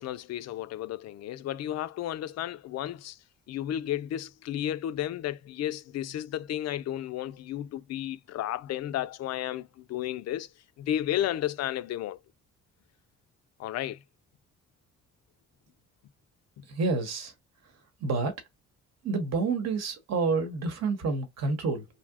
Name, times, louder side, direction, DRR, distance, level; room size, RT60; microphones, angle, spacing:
voice 1, 0.0-3.2 3.5-10.5 10.8-12.2 13.6-14.0 16.6-16.7, left 12 dB, 60° left, 0.4 m, -33 dB
voice 2, 16.6-17.3 17.6-17.7 18.0-18.4 19.0-21.9, right 4 dB, 60° right, 1.0 m, -29 dB
2.8 x 2.0 x 3.5 m
cardioid pair, 90°, 30 cm